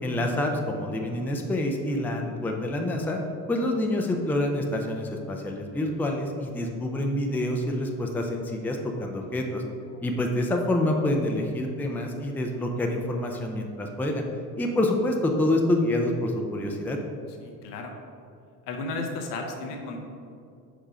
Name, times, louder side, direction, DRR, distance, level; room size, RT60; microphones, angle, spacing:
voice 1, 0.0-3.2 3.5-9.6 10.0-14.2 14.6-17.0, left 1 dB, 5° left, 2 dB, 0.5 m, -27 dB
voice 2, 17.4-17.9 18.7-20.0, left 3 dB, 70° left, 2 dB, 1.0 m, -34 dB
5.1 x 4.9 x 4.9 m, 2.4 s
hypercardioid pair, 65°, 48 cm